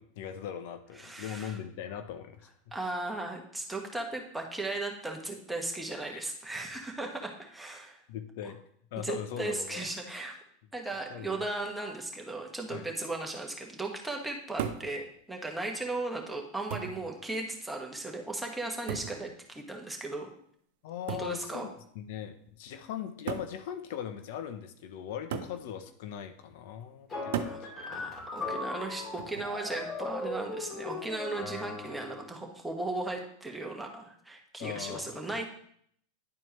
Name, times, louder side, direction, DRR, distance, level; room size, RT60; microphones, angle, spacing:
voice 1, 0.0-2.5 6.1-6.2 8.1-8.6 8.9-9.9 11.1-11.4 12.7-12.9 20.8-27.7 34.6-35.1, left 9 dB, 65° left, 9 dB, 0.6 m, -40 dB
voice 2, 1.0-1.6 2.7-8.0 9.0-10.3 10.7-20.3 21.1-21.7 25.3-25.4 27.2-27.6 27.9-35.5, right 2 dB, 5° right, 1 dB, 1.4 m, -36 dB
sound 1, 14.6-14.9 16.0-16.1 16.7-17.1 18.9-19.2 21.1-21.4 22.4-22.5 23.3-23.6 25.3-25.6 27.3-27.6 29.2-29.6, right 8 dB, 75° right, 0.6 m, -35 dB
sound 2, 27.1-32.3, left 3 dB, 35° left, 2.9 m, -38 dB
10.5 x 4.4 x 3.1 m, 0.65 s
hypercardioid pair, 110°, 0 cm